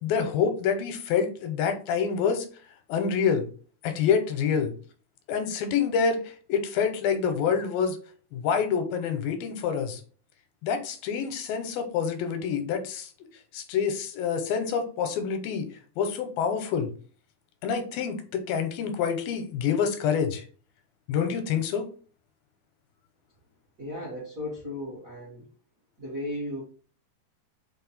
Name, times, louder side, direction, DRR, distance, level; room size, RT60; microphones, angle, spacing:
voice 1, 0.0-2.5 2.9-3.5 3.8-4.7 5.3-8.0 8.3-10.0 10.6-13.1 13.5-15.7 16.0-16.9 17.6-20.4 21.1-21.9, left 6 dB, 85° left, 7 dB, 2.4 m, -27 dB
voice 2, 23.8-25.5 26.0-26.6, left 1 dB, 60° right, -6 dB, 0.9 m, -35 dB
5.6 x 2.3 x 4.0 m, 0.41 s
omnidirectional pair, 4.2 m